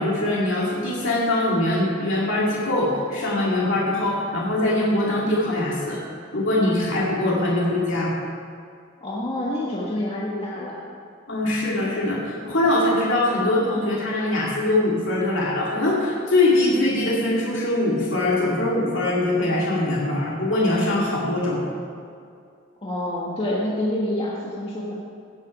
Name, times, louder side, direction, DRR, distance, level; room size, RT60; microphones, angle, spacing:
voice 1, 0.0-6.0 6.3-8.1 11.3-21.6, left 1 dB, 65° left, -5 dB, 2.2 m, -22 dB
voice 2, 9.0-10.8 22.8-24.9, left 1 dB, 25° left, -5 dB, 1.4 m, -27 dB
17.0 x 7.8 x 5.3 m, 2.4 s
head